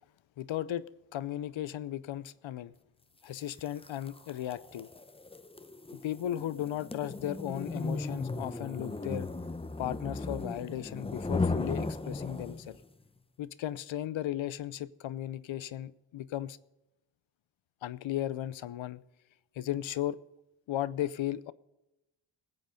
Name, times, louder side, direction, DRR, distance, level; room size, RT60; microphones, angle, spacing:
voice 1, 0.4-0.8 1.1-2.7 3.2-4.9 5.9-9.3 9.8-12.8 13.4-16.6 17.8-19.0 19.6-20.2 20.7-21.5, left 12 dB, 80° left, 18 dB, 0.7 m, -36 dB
sound 1, 3.5-12.8, left 3 dB, 10° left, 0.6 m, -36 dB
19.5 x 8.0 x 5.2 m, 0.95 s
cardioid pair, 85°, 46 cm